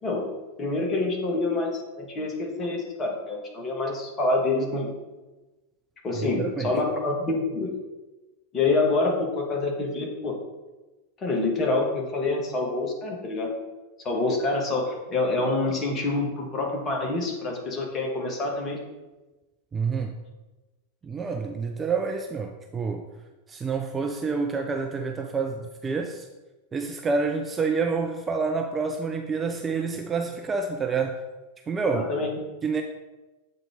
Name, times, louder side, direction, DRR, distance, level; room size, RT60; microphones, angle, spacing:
voice 1, 0.6-4.9 6.0-7.7 8.5-10.4 11.2-13.5 14.0-18.8 31.9-32.3, left 3 dB, 25° left, 0 dB, 1.4 m, -26 dB
voice 2, 6.4-6.7 19.7-20.1 21.0-23.1 23.5-26.3 26.7-31.2 31.7-32.1 32.6-32.8, right 4 dB, 20° right, 4 dB, 0.4 m, -28 dB
7.4 x 3.8 x 3.6 m, 1.1 s
figure-of-eight pair, 90°, 0 cm